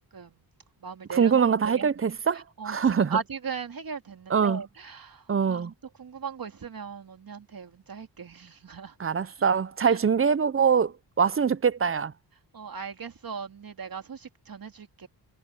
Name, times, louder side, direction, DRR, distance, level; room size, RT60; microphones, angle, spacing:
voice 1, 0.1-0.4 0.8-5.7 6.0-9.0 9.2-9.5 9.8-10.0 12.5-15.1, right 6 dB, 55° right, 2.8 m, -38 dB
voice 2, 1.1-3.2 4.3-4.6 5.3-5.7 9.0-12.1, right 6 dB, 30° right, 0.6 m, -23 dB
cardioid pair, 90°, 42 cm